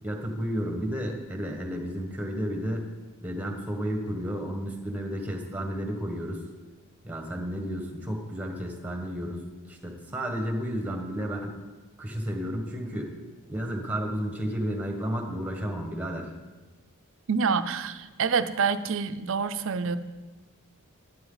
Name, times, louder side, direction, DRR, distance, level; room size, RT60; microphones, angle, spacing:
voice 1, 0.0-2.8 3.2-6.4 7.0-11.6 12.0-13.1 13.5-16.3, equal, 10° right, 3 dB, 1.5 m, -32 dB
voice 2, 17.3-20.0, right 5 dB, 65° right, 12 dB, 0.6 m, -27 dB
12.5 x 11.0 x 4.0 m, 1.2 s
head